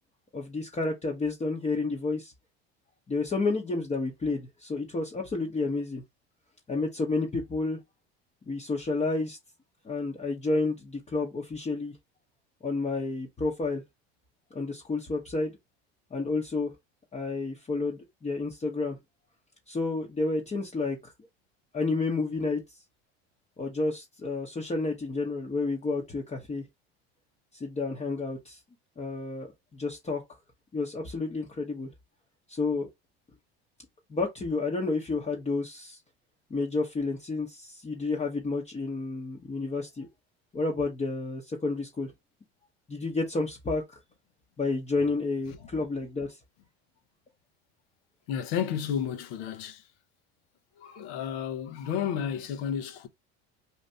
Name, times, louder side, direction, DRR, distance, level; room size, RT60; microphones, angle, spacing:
voice 1, 0.3-2.3 3.1-6.0 6.7-7.8 8.5-9.4 9.8-11.9 12.6-13.8 14.5-15.6 16.1-16.7 17.1-19.0 19.7-21.1 21.7-22.6 23.6-26.6 27.5-28.6 29.0-30.2 30.7-31.9 32.5-32.9 34.1-36.0 36.5-40.1 40.5-42.1 42.9-44.0 44.6-46.4, left 3 dB, 20° left, 1.0 m, -30 dB
voice 2, 48.3-49.9 50.8-53.1, left 8 dB, 70° left, 1.0 m, -32 dB
2.8 x 2.5 x 3.4 m
supercardioid pair, 90°, 32 cm